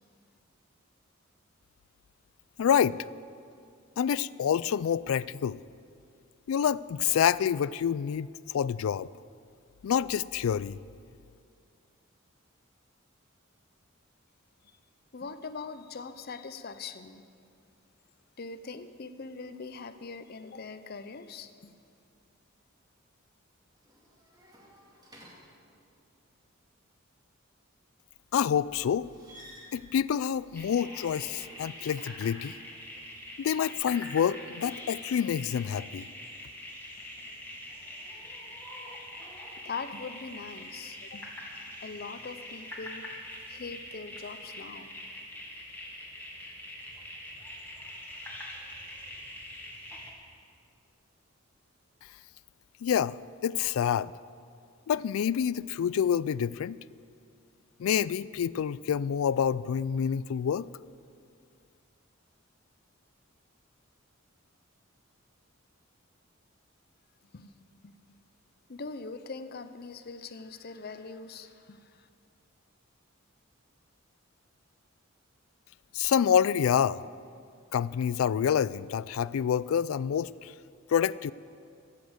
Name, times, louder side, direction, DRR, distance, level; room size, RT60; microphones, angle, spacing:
voice 1, 2.6-3.0 4.0-5.6 6.5-9.1 9.8-10.8 28.3-29.1 29.7-32.6 33.4-36.0 52.8-53.2 53.4-54.1 54.9-56.8 57.8-60.7 75.9-77.0 77.7-80.5 80.9-81.3, left 8 dB, 80° left, 20 dB, 0.3 m, -27 dB
voice 2, 15.1-17.2 18.4-21.7 39.6-41.3 41.8-43.1 43.5-44.9 67.3-67.9 68.7-72.1, left 4 dB, 50° left, 11 dB, 0.6 m, -42 dB
sound 1, 23.7-26.1 28.8-32.4 35.1-35.7, equal, 20° right, 2.2 m, -55 dB
sound 2, 30.5-50.1, left 1 dB, 10° left, 1.9 m, -44 dB
13.5 x 8.5 x 7.8 m, 2.3 s
head